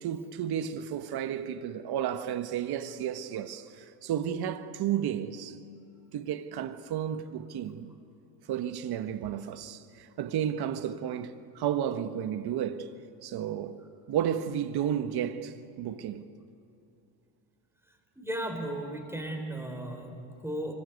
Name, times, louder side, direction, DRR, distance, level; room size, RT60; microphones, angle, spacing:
voice 1, 0.0-5.6 6.1-7.9 8.5-12.9 13.2-13.8 14.1-16.2, right 9 dB, 50° right, 1.4 m, -32 dB
voice 2, 18.2-20.7, right 1 dB, 5° right, 3.9 m, -35 dB
25.5 x 23.0 x 8.2 m
cardioid pair, 110°, 47 cm